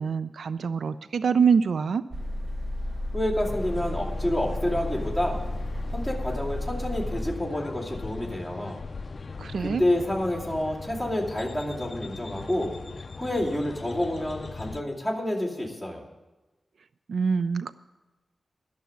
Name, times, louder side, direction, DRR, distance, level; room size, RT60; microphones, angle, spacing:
voice 1, 0.0-2.0 9.4-9.8 17.1-17.7, right 6 dB, 90° right, 14 dB, 0.3 m, -25 dB
sound 1, 2.1-7.3, left 1 dB, 50° right, 1.5 m, -32 dB
voice 2, 3.1-5.5 5.9-8.8 9.6-12.7 13.1-16.0, left 1 dB, 15° right, -3 dB, 2.6 m, -29 dB
sound 2, 3.4-14.8, left 4 dB, 45° left, 0.4 m, -40 dB
11.5 x 7.0 x 9.0 m, 1.1 s
wide cardioid pair, 135°, 0 cm